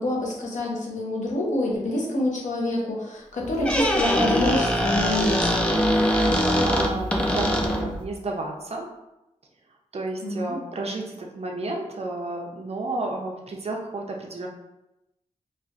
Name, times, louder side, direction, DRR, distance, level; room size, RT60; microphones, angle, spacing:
voice 1, 0.0-5.7 10.2-10.6, left 1 dB, 80° left, -2 dB, 0.9 m, -27 dB
Squeak, 3.4-8.0, equal, 10° left, 0.5 m, -22 dB
voice 2, 6.6-8.9 9.9-14.5, right 2 dB, 55° right, 0 dB, 0.6 m, -32 dB
4.3 x 2.5 x 2.4 m, 0.93 s
wide cardioid pair, 85°, 13 cm